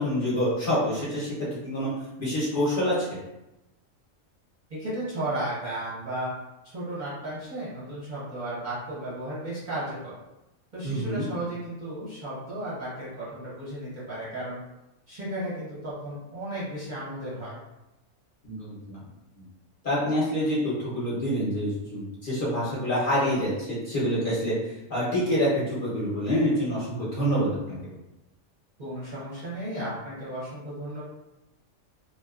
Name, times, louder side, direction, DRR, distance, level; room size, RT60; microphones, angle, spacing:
voice 1, 0.0-1.9 2.2-3.2 10.8-11.2 18.4-19.0 19.4-19.5 19.8-27.9, equal, 50° left, -8 dB, 0.8 m, -27 dB
voice 2, 4.7-6.3 6.6-10.1 10.7-14.6 15.1-17.6 28.8-31.0, right 1 dB, 40° right, -9 dB, 0.8 m, -34 dB
2.7 x 2.2 x 2.3 m, 0.93 s
omnidirectional pair, 1.3 m